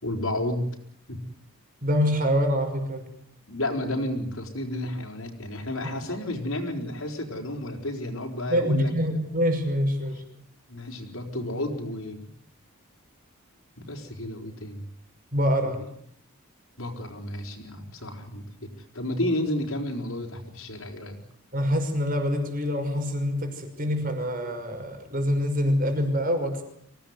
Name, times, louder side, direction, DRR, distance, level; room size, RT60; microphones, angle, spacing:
voice 1, 0.0-0.7 1.1-1.2 3.5-8.9 10.7-12.3 13.8-14.9 15.6-15.7 16.8-21.2, left 1 dB, 65° left, 2 dB, 4.7 m, -32 dB
voice 2, 1.8-3.1 8.5-10.2 15.3-15.8 21.5-26.6, equal, 40° right, 5 dB, 5.9 m, -25 dB
26.0 x 17.5 x 9.8 m, 0.68 s
head